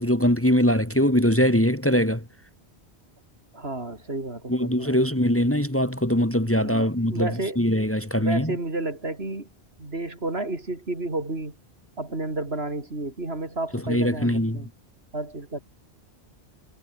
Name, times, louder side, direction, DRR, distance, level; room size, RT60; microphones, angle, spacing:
voice 1, 0.0-2.2 4.5-7.3 7.6-8.5 13.9-14.6, equal, 10° left, 2.1 m, -22 dB
voice 2, 3.5-4.9 6.4-7.6 8.2-9.5 9.8-11.5 12.0-14.7 15.1-15.6, right 2 dB, 70° right, 4.4 m, -31 dB
omnidirectional pair, 1.1 m